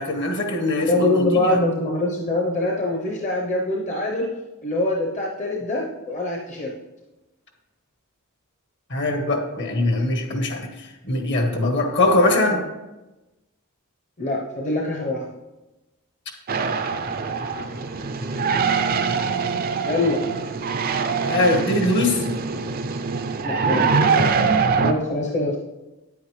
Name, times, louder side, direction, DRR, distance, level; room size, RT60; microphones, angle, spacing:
voice 1, 0.0-1.6 8.9-12.6 21.2-22.2, left 2 dB, 55° left, 4 dB, 1.2 m, -22 dB
voice 2, 0.9-4.3 4.6-6.7 12.5-12.6 14.2-15.3 19.8-20.2 23.4-23.9 24.8-25.6, left 2 dB, 35° left, -1 dB, 0.8 m, -24 dB
sound 1, 16.5-24.9, right 5 dB, 40° right, 0.5 m, -23 dB
9.0 x 8.5 x 3.2 m, 1.1 s
head